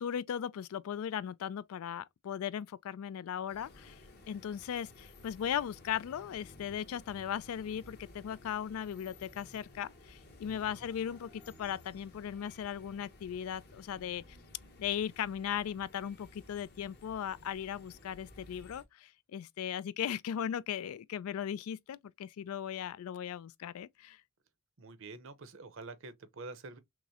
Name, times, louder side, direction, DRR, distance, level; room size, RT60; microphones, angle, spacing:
voice 1, 0.0-4.0 4.3-14.2 14.8-24.2, left 9 dB, 75° left, 0.3 m, -37 dB
sound 1, 3.5-18.8, left 1 dB, 50° left, 1.0 m, -56 dB
voice 2, 10.4-10.9 24.8-26.8, right 3 dB, 65° right, 0.7 m, -47 dB
6.0 x 2.1 x 2.7 m
head